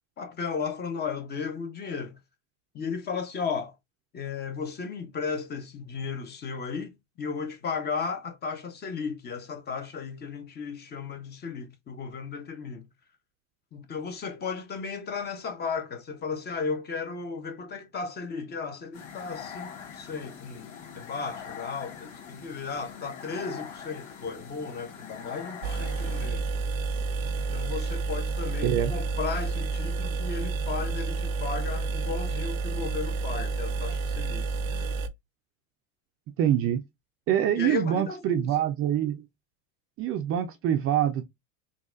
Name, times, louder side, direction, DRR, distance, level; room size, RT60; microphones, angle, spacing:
voice 1, 0.2-2.2 2.7-3.8 4.1-12.9 13.7-26.5 27.3-35.0 37.6-38.5, left 5 dB, 25° left, 0.7 m, -35 dB
sound 1, 18.9-26.3, left 7 dB, 70° left, 1.6 m, -43 dB
sound 2, 25.6-35.1, right 3 dB, 80° right, 0.7 m, -30 dB
voice 2, 36.4-36.8 37.3-39.2 40.0-41.2, right 10 dB, 35° right, 0.4 m, -25 dB
4.0 x 2.3 x 2.4 m
hypercardioid pair, 105°, 41 cm